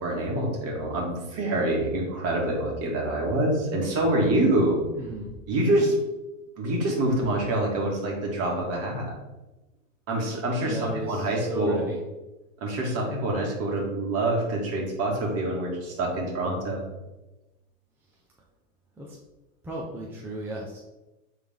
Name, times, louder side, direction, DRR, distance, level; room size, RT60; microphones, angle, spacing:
voice 1, 0.0-4.8 5.5-6.0 6.6-9.1 10.1-11.9 12.6-16.8, right 1 dB, 35° right, -1 dB, 2.0 m, -26 dB
voice 2, 5.0-5.3 10.6-12.0 19.0-19.2 19.6-20.8, right 1 dB, 5° right, -4 dB, 0.7 m, -34 dB
8.0 x 3.6 x 3.7 m, 1.0 s
supercardioid pair, 135°, 41 cm